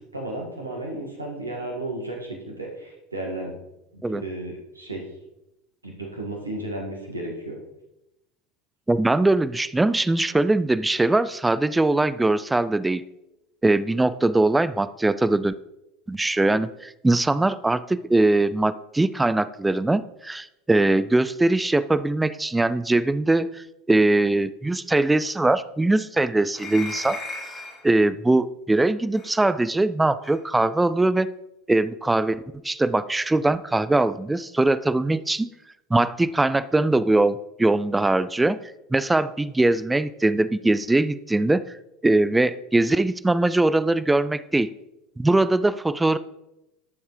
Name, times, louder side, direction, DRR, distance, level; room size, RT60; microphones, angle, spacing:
voice 1, 0.1-3.5 3.9-5.0 5.8-7.6, right 1 dB, 85° right, 0 dB, 1.8 m, -33 dB
voice 2, 8.9-13.0 13.6-15.5 16.1-27.2 27.8-31.3 31.7-35.5 35.9-38.6 38.9-41.6 42.0-44.7 45.2-46.2, right 2 dB, 10° right, 15 dB, 0.3 m, -21 dB
sound 1, 26.5-27.9 29.1-29.3 30.2-30.4, left 3 dB, 30° left, 2.3 m, -36 dB
11.5 x 7.1 x 3.2 m, 0.92 s
figure-of-eight pair, 75°, 0 cm